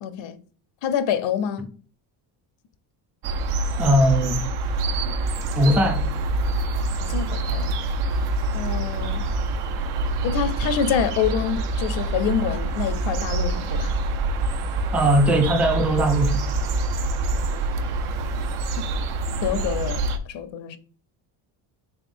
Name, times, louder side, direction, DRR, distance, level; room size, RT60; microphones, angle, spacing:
voice 1, 0.0-0.4 0.8-1.7 7.0-7.7 8.5-9.3 10.2-14.0 19.4-20.8, left 8 dB, 65° left, 0.6 m, -26 dB
sound 1, 3.2-20.2, right 2 dB, 85° right, 0.7 m, -26 dB
voice 2, 3.8-4.4 5.6-6.1 14.9-16.4, right 1 dB, 5° right, 0.4 m, -19 dB
3.6 x 3.4 x 2.5 m
cardioid pair, 95°, 49 cm